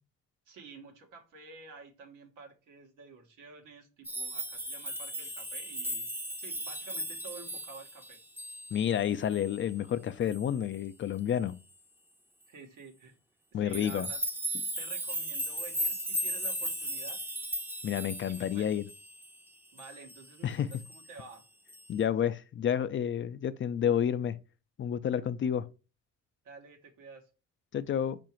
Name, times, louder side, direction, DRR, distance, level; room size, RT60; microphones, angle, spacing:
voice 1, 0.5-6.1 6.4-8.2 12.5-13.2 13.5-14.2 14.7-17.2 18.3-18.7 19.7-21.5 26.4-27.3, right 4 dB, 85° right, 1.0 m, -50 dB
sound 1, 4.0-9.0 9.3-9.6 10.3-10.5 13.7-19.4 19.8-20.3 20.7-21.1 21.7-21.9, equal, 5° right, 0.6 m, -37 dB
voice 2, 8.7-11.6 13.5-14.1 17.8-18.8 20.4-20.7 21.9-24.4 24.8-25.7 27.7-28.2, left 9 dB, 40° left, 0.4 m, -30 dB
4.6 x 2.5 x 4.3 m
cardioid pair, 90°, 30 cm